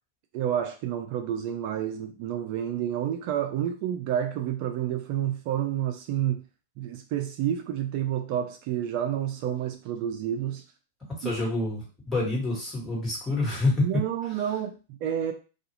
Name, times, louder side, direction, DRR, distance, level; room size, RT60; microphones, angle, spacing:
voice 1, 0.3-6.4 6.8-10.6 11.2-11.4 13.8-15.3, right 10 dB, 50° right, 0.4 m, -29 dB
voice 2, 11.2-14.0, left 2 dB, 15° left, 1.5 m, -27 dB
2.4 x 2.4 x 2.9 m
hypercardioid pair, 115°, 0 cm